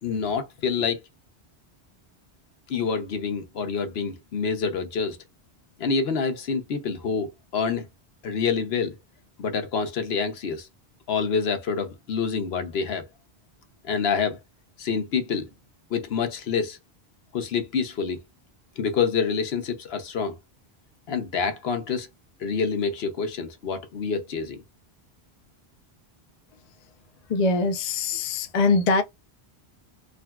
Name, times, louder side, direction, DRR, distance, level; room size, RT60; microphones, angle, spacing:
voice 1, 0.0-1.0 2.7-5.2 5.8-7.9 8.2-8.9 9.4-10.7 11.1-13.1 13.8-14.4 14.8-15.5 15.9-16.8 17.3-18.2 18.8-20.3 21.1-22.1 22.4-24.6, left 5 dB, 70° left, 1.0 m, -27 dB
voice 2, 27.3-29.0, left 3 dB, 50° left, 0.5 m, -22 dB
3.8 x 2.1 x 2.2 m
omnidirectional pair, 1.1 m